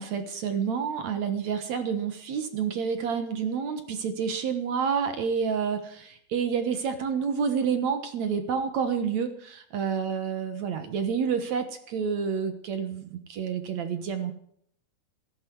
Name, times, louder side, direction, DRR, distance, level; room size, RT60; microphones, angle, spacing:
voice 1, 0.0-14.3, right 6 dB, 65° right, 9 dB, 1.9 m, -29 dB
16.0 x 15.0 x 4.6 m, 0.65 s
omnidirectional pair, 4.8 m